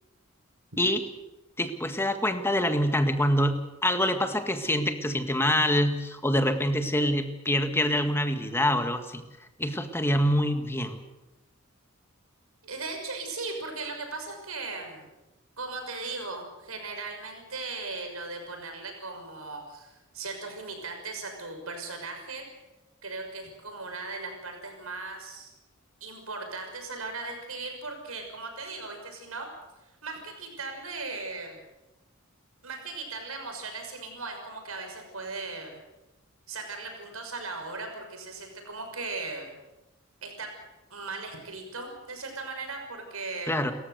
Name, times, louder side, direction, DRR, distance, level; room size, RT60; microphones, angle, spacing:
voice 1, 1.6-9.2 9.6-11.0 43.5-43.7, left 1 dB, 10° left, 7 dB, 1.8 m, -25 dB
voice 2, 12.6-15.1 15.6-22.4 23.0-25.5 26.0-29.5 29.8-31.6 32.6-35.8 36.5-39.6 40.2-40.5 40.9-43.5, right 3 dB, 85° right, 4 dB, 6.2 m, -38 dB
29.0 x 15.0 x 8.1 m, 1.0 s
head